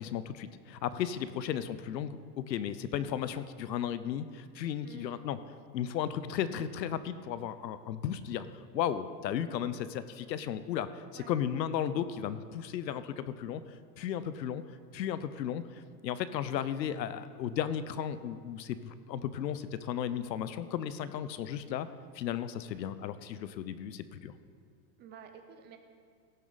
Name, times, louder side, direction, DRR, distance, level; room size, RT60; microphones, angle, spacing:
voice 1, 0.0-5.4 5.7-8.5 8.7-13.6 14.0-14.6 14.9-21.9 22.1-24.3, left 9 dB, 85° left, 13 dB, 0.8 m, -35 dB
voice 2, 4.8-5.2 11.1-11.3 25.0-25.8, right 7 dB, 20° right, 6 dB, 0.8 m, -51 dB
16.5 x 7.4 x 4.0 m, 2.1 s
supercardioid pair, 140°, 49 cm